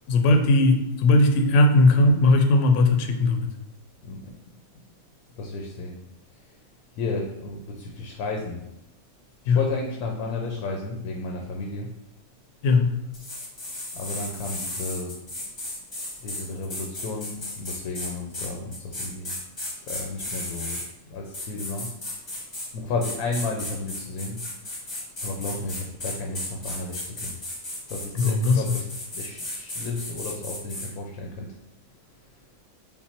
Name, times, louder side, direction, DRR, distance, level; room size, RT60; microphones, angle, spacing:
voice 1, 0.1-3.5 9.5-9.6 12.6-12.9 28.1-28.6, left 2 dB, 65° left, 4 dB, 0.9 m, -18 dB
voice 2, 4.0-4.4 5.4-6.0 7.0-8.6 9.4-12.0 13.9-15.5 16.2-19.4 19.9-22.0 22.7-24.5 25.2-27.4 27.9-31.6, left 3 dB, 85° left, 1 dB, 1.1 m, -33 dB
sound 1, 13.1-20.9 21.3-22.7 23.0-30.9, left 1 dB, 25° left, 0.7 m, -35 dB
5.6 x 2.1 x 4.3 m, 0.84 s
omnidirectional pair, 1.5 m